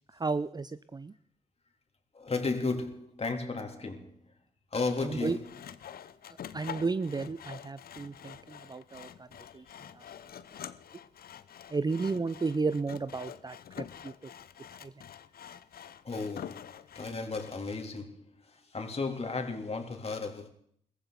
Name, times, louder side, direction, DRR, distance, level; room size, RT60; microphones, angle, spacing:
voice 1, 0.1-1.1 5.1-5.4 6.5-9.3 9.5-9.6 9.9-10.0 11.7-14.1 14.8-14.9, right 4 dB, 20° right, 0.6 m, -33 dB
voice 2, 2.1-4.2 4.7-5.5 16.0-20.5, left 3 dB, 35° left, 3.4 m, -34 dB
Sawing, 5.1-17.6, left 9 dB, 55° left, 0.9 m, -47 dB
22.0 x 15.0 x 4.1 m
hypercardioid pair, 40°, 19 cm